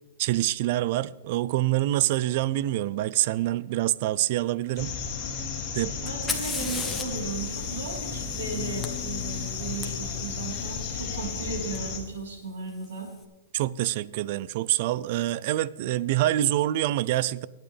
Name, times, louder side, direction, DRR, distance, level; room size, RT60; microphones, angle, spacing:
voice 1, 0.2-4.9 5.7-5.9 13.5-17.5, right 14 dB, 45° right, 0.4 m, -26 dB
sound 1, 4.8-12.0, left 6 dB, 30° left, 2.6 m, -33 dB
voice 2, 5.8-13.1, right 4 dB, 90° right, 3.9 m, -36 dB
Fire, 6.1-9.9 11.8-11.9 12.7-13.1, left 4 dB, 5° left, 1.1 m, -36 dB
22.0 x 9.2 x 3.4 m
hypercardioid pair, 155°, 0 cm